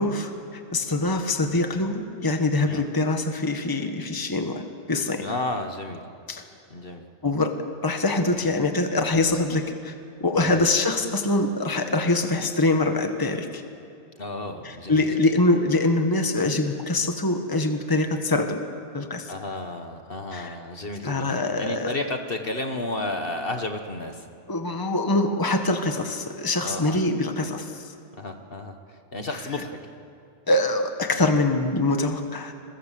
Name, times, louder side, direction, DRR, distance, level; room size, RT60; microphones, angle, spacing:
voice 1, 0.0-4.6 4.9-5.3 6.3-6.4 7.2-7.6 7.8-9.9 10.2-13.6 14.6-18.6 18.9-19.3 20.3-20.6 21.0-21.9 24.5-27.8 30.5-32.5, left 2 dB, 15° left, 5 dB, 1.5 m, -24 dB
voice 2, 5.2-6.0 6.7-7.1 14.2-15.1 19.3-24.3 26.6-27.0 28.1-29.8, left 2 dB, 45° left, 5 dB, 1.7 m, -32 dB
28.0 x 22.5 x 7.7 m, 2.7 s
omnidirectional pair, 1.3 m